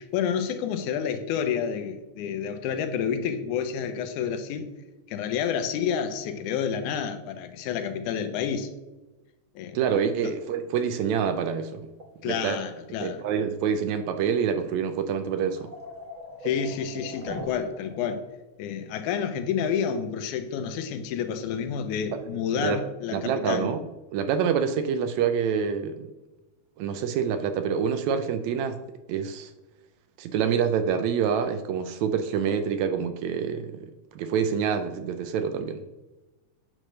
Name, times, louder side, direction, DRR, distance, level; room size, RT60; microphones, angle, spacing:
voice 1, 0.0-4.7 5.1-8.7 9.6-9.8 12.2-13.2 16.4-18.3 18.6-23.7, left 7 dB, 85° left, 8 dB, 2.1 m, -29 dB
voice 2, 9.7-11.9 12.2-12.6 13.0-15.6 22.1-22.2 22.6-22.8 23.1-23.8 24.1-26.1 26.8-28.8 29.1-29.5 30.2-35.8, right 7 dB, 80° right, 9 dB, 1.7 m, -26 dB
sound 1, 10.4-11.5 12.0-12.7 13.2-13.4 13.7-13.9 14.4-14.5 15.0-18.3 18.7-18.8 21.0-21.1 21.4-21.6 22.1-22.3, left 1 dB, 40° right, 1.0 m, -42 dB
8.7 x 3.2 x 6.4 m, 1.1 s
omnidirectional pair, 3.4 m